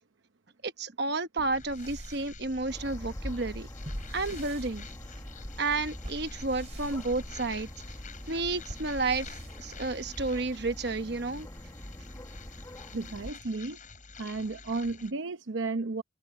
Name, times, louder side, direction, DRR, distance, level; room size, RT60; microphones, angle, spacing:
voice 1, 0.6-3.7 4.1-4.9 5.6-7.7 8.3-11.5, right 3 dB, 55° right, 1.1 m, -31 dB
sound 1, 1.4-10.3, equal, 35° right, 6.0 m, -46 dB
sound 2, 1.5-15.1, left 5 dB, 40° left, 7.3 m, -50 dB
sound 3, 2.7-13.3, equal, 15° left, 1.3 m, -44 dB
voice 2, 12.9-13.8 14.2-16.0, right 3 dB, 70° right, 0.8 m, -33 dB
head